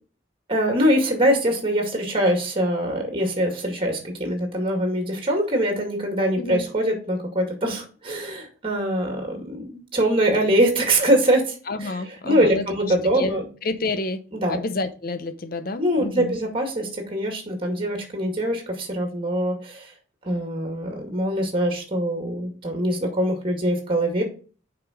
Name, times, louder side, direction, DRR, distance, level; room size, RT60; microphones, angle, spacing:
voice 1, 0.5-12.0 12.2-13.4 14.3-14.6 15.8-19.9 20.2-24.2, right 1 dB, 25° right, 2.1 m, -23 dB
voice 2, 11.7-13.3 13.6-14.2 14.5-16.4, left 2 dB, 50° left, 0.8 m, -29 dB
6.7 x 5.1 x 4.9 m
head